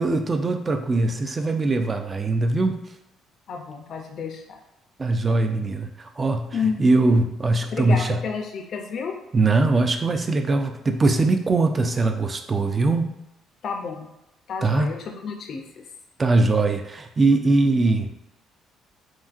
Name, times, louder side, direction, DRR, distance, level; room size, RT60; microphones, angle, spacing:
voice 1, 0.0-2.8 5.0-6.5 6.8-8.2 9.3-13.1 14.6-14.9 16.2-18.1, right 3 dB, 30° right, 6 dB, 0.3 m, -21 dB
voice 2, 3.5-4.6 6.5-6.8 7.7-9.1 13.6-14.1 14.5-15.8, left 6 dB, 60° left, 2 dB, 0.3 m, -30 dB
2.7 x 2.4 x 2.4 m, 0.87 s
supercardioid pair, 70°, 0 cm